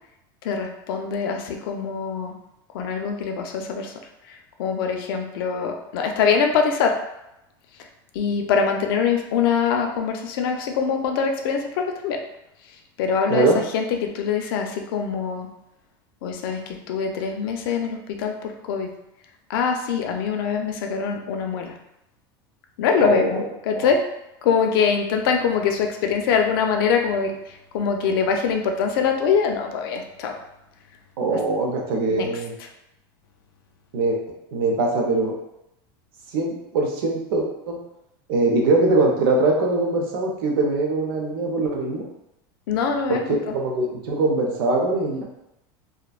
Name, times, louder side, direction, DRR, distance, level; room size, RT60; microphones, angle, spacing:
voice 1, 0.4-2.4 2.7-3.9 4.2-7.0 8.1-12.2 13.0-15.5 16.2-18.9 19.5-21.7 22.8-24.1 24.4-30.4 31.3-31.4 32.1-32.4 42.7-43.5, left 6 dB, 80° left, 4 dB, 0.4 m, -23 dB
voice 2, 31.2-32.5 33.9-34.2 34.5-35.4 36.3-37.8 38.3-42.0 43.1-43.2 43.5-45.3, right 2 dB, 85° right, 0 dB, 0.7 m, -22 dB
2.5 x 2.2 x 2.4 m, 0.85 s
supercardioid pair, 180°, 12 cm